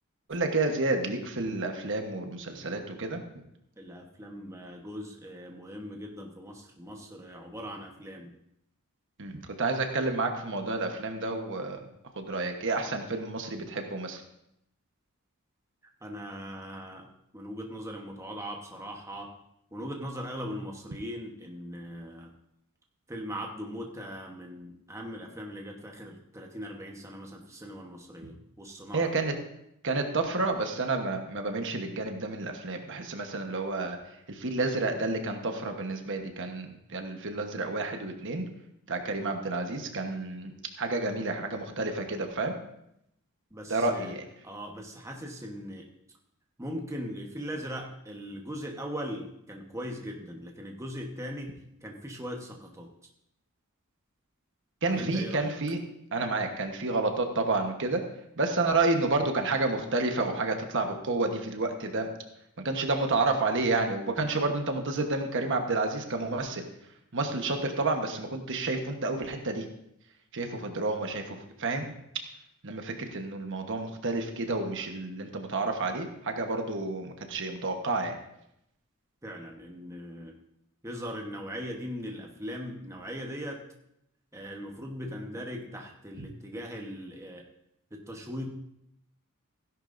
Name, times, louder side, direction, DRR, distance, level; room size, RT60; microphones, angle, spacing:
voice 1, 0.3-3.2 9.2-11.9 12.2-14.2 28.9-29.3 29.8-34.0 34.3-38.4 38.9-42.5 43.7-44.2 54.8-55.8 56.1-58.0 58.4-62.1 62.6-66.6 67.1-69.6 70.3-71.9 72.6-78.2, right 3 dB, 60° right, 4 dB, 1.2 m, -30 dB
voice 2, 3.8-8.3 16.0-17.1 17.3-19.3 19.7-22.3 23.1-29.2 43.5-44.1 44.4-45.9 46.6-52.9 54.9-55.5 79.2-80.4 80.8-83.6 84.3-87.4 87.9-88.5, equal, 15° right, 1 dB, 1.1 m, -39 dB
16.0 x 11.0 x 2.6 m, 0.79 s
head